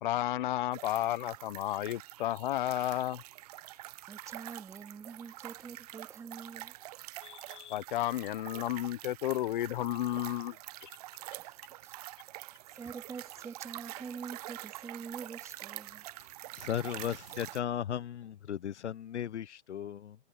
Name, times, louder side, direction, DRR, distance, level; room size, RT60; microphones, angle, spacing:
voice 1, 0.0-3.2 7.2-10.6 10.8-10.9, left 13 dB, 45° left, 1.0 m, -32 dB
sound 1, 0.7-17.6, right 16 dB, 35° right, 0.9 m, -46 dB
voice 2, 4.1-6.7 11.4-11.5 11.8-11.9 12.4-16.0, right 5 dB, 10° right, 2.7 m, -45 dB
voice 3, 16.6-20.2, left 9 dB, 75° left, 0.9 m, -36 dB
hypercardioid pair, 145°, 34 cm